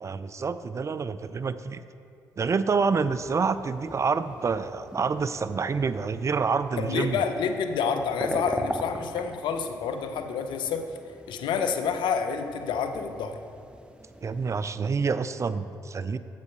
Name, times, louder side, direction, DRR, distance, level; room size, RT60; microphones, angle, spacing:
voice 1, 0.0-1.8 2.4-7.2 14.2-16.2, right 5 dB, 35° right, 13 dB, 0.4 m, -27 dB
sound 1, 3.1-14.7, right 1 dB, 10° right, 0.8 m, -41 dB
voice 2, 6.8-10.8 11.3-13.3, left 6 dB, 70° left, 7 dB, 0.6 m, -28 dB
7.9 x 5.5 x 5.1 m, 2.5 s
hypercardioid pair, 45°, 8 cm